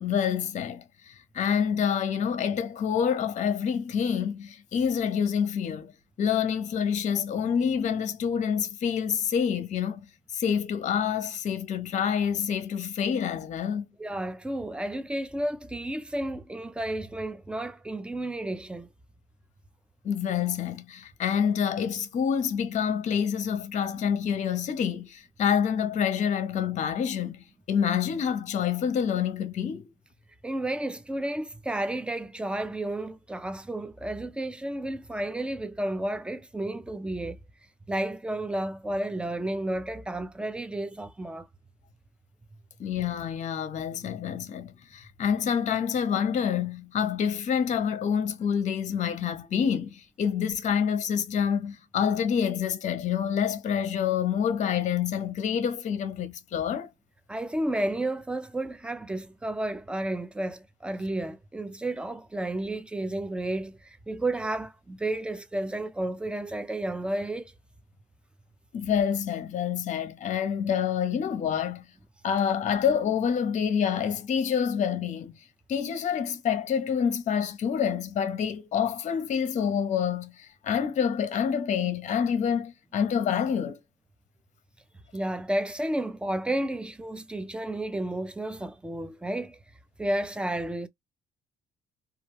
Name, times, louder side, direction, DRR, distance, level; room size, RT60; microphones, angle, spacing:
voice 1, 0.0-5.9 6.2-13.9 20.0-29.9 42.8-56.9 68.7-71.8 72.2-75.4 75.7-83.8, left 7 dB, 45° left, 0.6 m, -27 dB
voice 2, 14.0-18.9 30.4-37.4 37.9-41.5 57.3-67.5 85.1-89.6 90.0-90.9, right 1 dB, 5° right, 0.3 m, -32 dB
2.3 x 2.2 x 3.0 m
cardioid pair, 110°, 17 cm